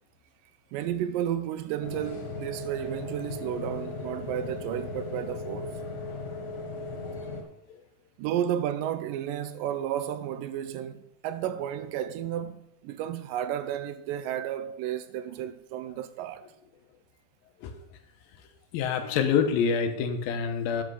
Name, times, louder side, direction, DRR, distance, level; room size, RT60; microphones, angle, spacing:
voice 1, 0.7-5.8 8.2-16.5, right 10 dB, 80° right, 2.1 m, -32 dB
sound 1, 1.8-7.4, left 3 dB, 75° left, 3.4 m, -37 dB
voice 2, 18.7-20.8, left 6 dB, 90° left, 2.8 m, -26 dB
9.3 x 7.5 x 6.3 m
omnidirectional pair, 4.1 m